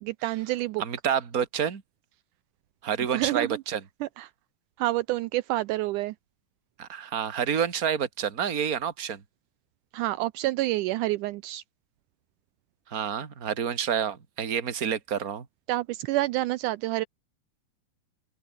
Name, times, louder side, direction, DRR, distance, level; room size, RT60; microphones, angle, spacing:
voice 1, 0.0-0.8 3.1-3.6 4.0-4.3 4.8-6.1 9.9-11.6 15.7-17.1, right 17 dB, 85° right, 1.8 m, -28 dB
voice 2, 0.8-1.8 2.8-3.8 6.8-9.2 12.9-15.5, right 8 dB, 30° right, 1.9 m, -28 dB
open air
omnidirectional pair, 4.1 m